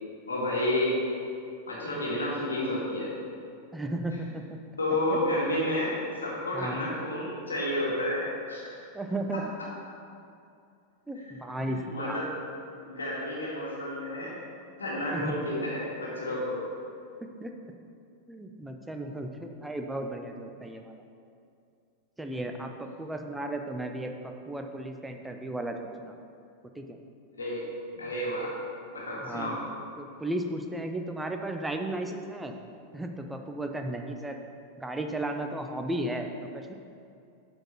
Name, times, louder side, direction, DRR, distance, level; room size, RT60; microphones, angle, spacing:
voice 1, 0.3-1.1 1.7-3.1 4.8-8.9 11.2-11.3 11.6-12.3 12.8-14.3 14.8-16.6 27.3-27.6 27.9-28.5 28.9-29.6, left 1 dB, 75° left, -5 dB, 2.0 m, -30 dB
voice 2, 3.7-4.6 5.1-5.2 6.5-6.9 8.9-9.4 11.1-12.3 15.1-15.4 17.4-17.5 18.3-21.0 22.2-26.1 26.8-27.0 29.2-29.7 30.0-32.5 32.9-34.4 34.8-36.3 36.5-36.7, right 1 dB, 5° right, 4 dB, 0.7 m, -35 dB
7.8 x 4.5 x 5.6 m, 2.4 s
figure-of-eight pair, 90°, 0 cm